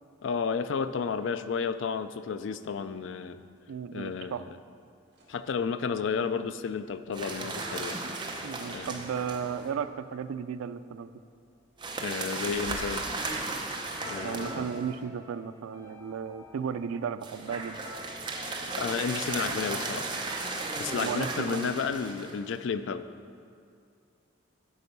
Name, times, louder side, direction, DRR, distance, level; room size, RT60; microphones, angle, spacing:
voice 1, 0.2-3.5 3.9-4.5 5.3-8.0 8.7-9.0 12.0-13.0 14.1-14.6 18.8-20.1 20.8-23.0, left 6 dB, 65° left, 12 dB, 0.3 m, -32 dB
voice 2, 3.7-4.5 8.4-11.1 14.2-17.8 20.9-21.8, right 7 dB, 85° right, 12 dB, 0.3 m, -35 dB
sound 1, 5.1-14.2, equal, 50° right, 1.8 m, -56 dB
sound 2, 7.1-9.7 11.8-15.0 17.2-22.6, right 3 dB, 20° right, 0.6 m, -35 dB
sound 3, 14.0-19.8, left 1 dB, 35° left, 1.6 m, -48 dB
11.0 x 4.5 x 5.4 m, 2.3 s
head